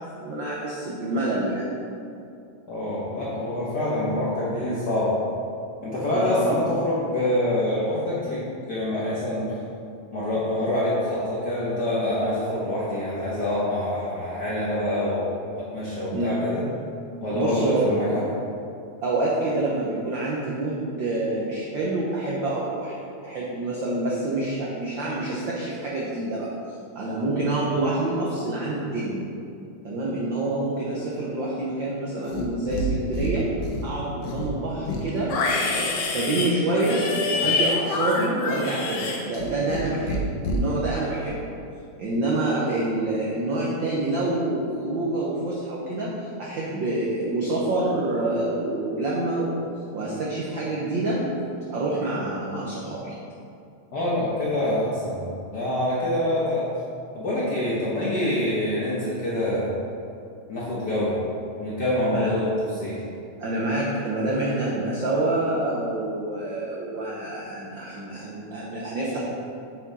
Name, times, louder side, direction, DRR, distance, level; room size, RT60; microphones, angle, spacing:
voice 1, 0.0-1.7 6.1-6.3 16.1-16.3 17.3-17.8 19.0-22.9 23.2-26.5 26.9-29.2 29.8-33.5 33.8-41.5 42.0-51.2 51.7-53.2 62.1-62.3 63.4-69.2, right 2 dB, 80° right, -5 dB, 1.0 m, -27 dB
voice 2, 2.7-5.2 5.8-8.4 8.7-9.5 10.1-16.6 17.2-18.2 53.9-56.7 57.1-59.7 60.5-61.2 61.6-62.5 62.8-63.0, left 1 dB, 60° left, -8 dB, 1.1 m, -26 dB
Livestock farm animals working animals, 32.2-32.9 33.1-33.9 34.2-39.8 40.1-40.6, left 3 dB, 80° left, 2.2 m, -27 dB
7.0 x 6.0 x 4.1 m, 2.6 s
omnidirectional pair, 3.3 m